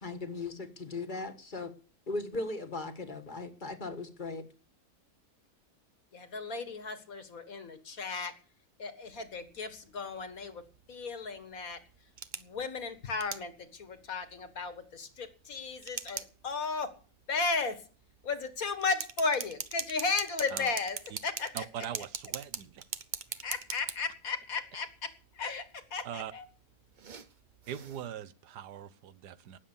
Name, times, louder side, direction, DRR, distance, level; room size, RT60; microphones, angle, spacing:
voice 1, 0.0-1.7 2.1-4.4, left 3 dB, 30° left, 1.5 m, -38 dB
voice 2, 6.1-8.3 8.8-10.6 10.9-11.8 12.4-16.9 17.3-17.8 18.2-21.0 21.2-21.7 23.4-26.5, left 4 dB, 60° left, 1.9 m, -35 dB
sound 1, 9.0-28.1, right 6 dB, 45° right, 0.6 m, -45 dB
voice 3, 21.5-22.8 26.0-26.3 27.7-29.6, right 9 dB, 90° right, 1.4 m, -41 dB
19.0 x 7.6 x 7.1 m
omnidirectional pair, 1.7 m